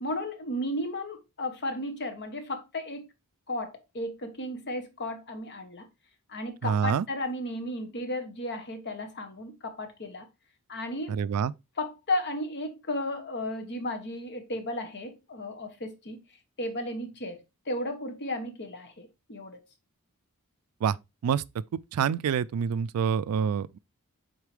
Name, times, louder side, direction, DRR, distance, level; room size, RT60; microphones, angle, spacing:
voice 1, 0.0-3.1 3.5-5.9 6.3-10.3 10.7-11.2 11.8-16.2 16.6-19.6, left 1 dB, 50° left, 1.2 m, -34 dB
voice 2, 6.6-7.1 11.1-11.5 20.8-21.0 21.2-21.4 21.9-23.8, right 7 dB, 70° right, 0.3 m, -26 dB
8.1 x 3.9 x 3.3 m
head